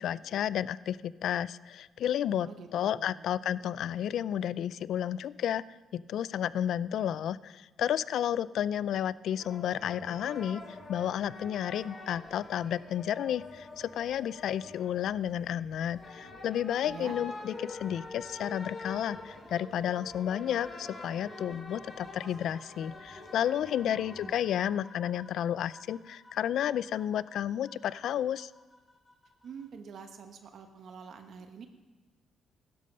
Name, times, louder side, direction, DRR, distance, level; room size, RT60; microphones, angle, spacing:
voice 1, 0.0-5.6 5.9-28.5, left 10 dB, 75° left, 19 dB, 0.3 m, -32 dB
voice 2, 2.4-3.2 16.8-17.1 23.8-24.0 24.2-24.5 29.4-31.7, right 6 dB, 65° right, 6 dB, 1.2 m, -46 dB
sound 1, 9.4-24.5, left 3 dB, 40° left, 3.1 m, -45 dB
sound 2, 19.2-29.7, left 1 dB, 15° left, 3.1 m, -57 dB
16.0 x 12.0 x 5.5 m, 1.2 s
cardioid pair, 90°, 0 cm